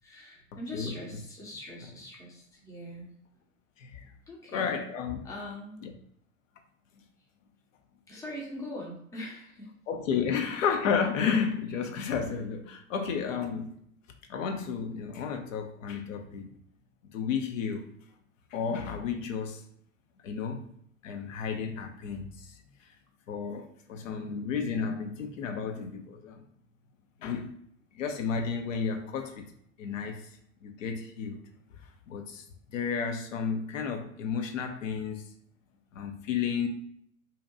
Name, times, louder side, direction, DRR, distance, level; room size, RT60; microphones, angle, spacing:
voice 1, 0.0-3.1 4.0-4.7 5.2-5.8 8.1-9.7, left 1 dB, 10° left, -2 dB, 0.5 m, -42 dB
voice 2, 4.5-5.2 5.8-5.9 9.9-13.7 14.3-16.5 17.1-17.9 18.5-19.6 20.2-20.7 21.0-22.5 23.3-26.4 27.2-27.5 27.9-29.4 29.8-30.3 30.6-31.4 32.1-32.4 32.7-35.3 35.9-36.7, left 6 dB, 70° left, 5 dB, 0.5 m, -32 dB
2.7 x 2.1 x 2.5 m, 0.67 s
figure-of-eight pair, 85°, 41 cm